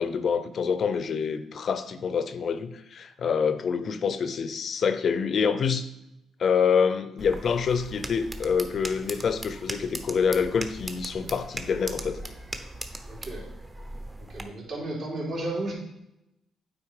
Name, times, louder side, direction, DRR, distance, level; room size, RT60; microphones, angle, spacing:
voice 1, 0.0-5.9 6.4-12.2, left 6 dB, 55° left, 12 dB, 0.5 m, -26 dB
sound 1, 7.2-14.4, right 1 dB, 20° right, 0.8 m, -39 dB
voice 2, 13.1-13.4 14.3-15.7, right 2 dB, 65° right, -4 dB, 3.1 m, -33 dB
8.7 x 4.0 x 4.9 m, 0.86 s
cardioid pair, 90°, 0 cm